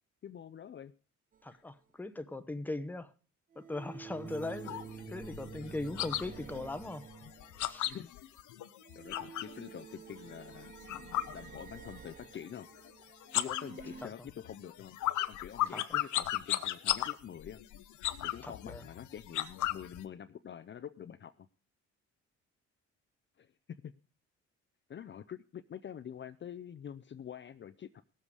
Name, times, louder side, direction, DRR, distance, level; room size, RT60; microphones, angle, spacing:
voice 1, 0.2-0.9 1.5-1.6 7.9-8.1 9.0-10.7 11.3-12.7 13.3-15.0 15.3-17.6 18.2-21.5 23.4-23.9 24.9-28.0, left 9 dB, 40° left, 0.5 m, -46 dB
sound 1, 1.3-1.4 3.5-8.0 8.8-14.1, right 7 dB, 30° right, 0.5 m, -49 dB
voice 2, 1.4-3.1 3.6-7.1 7.6-7.8 14.0-14.1 15.7-16.0 18.4-18.8, left 2 dB, 5° left, 0.8 m, -40 dB
sound 2, 4.3-9.6 9.9-12.1 12.4-12.9 13.2-20.0, left 14 dB, 75° left, 0.8 m, -36 dB
17.5 x 7.5 x 4.8 m
cardioid pair, 90°, 30 cm